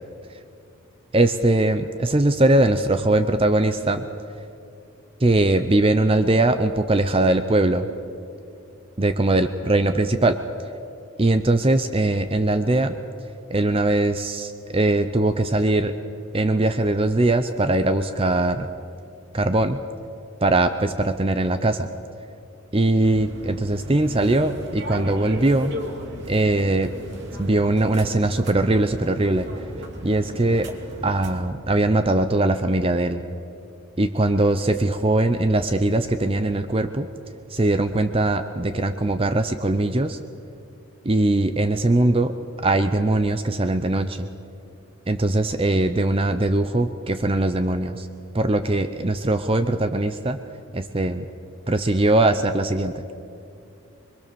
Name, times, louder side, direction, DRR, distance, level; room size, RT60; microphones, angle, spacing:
voice 1, 1.1-4.1 5.2-7.9 9.0-10.4 11.2-13.0 13.5-15.9 16.3-18.7 19.3-19.8 20.4-21.9 22.7-25.8 26.3-26.9 27.4-29.5 30.0-30.7 31.0-33.2 34.0-37.1 37.5-40.2 41.0-42.3 42.6-44.3 45.1-48.1 48.3-50.4 50.7-51.3 51.7-53.0, right 2 dB, 25° right, 9 dB, 0.7 m, -21 dB
sound 1, 23.0-31.4, equal, 55° right, 2.6 m, -36 dB
25.5 x 22.0 x 7.0 m, 2.7 s
head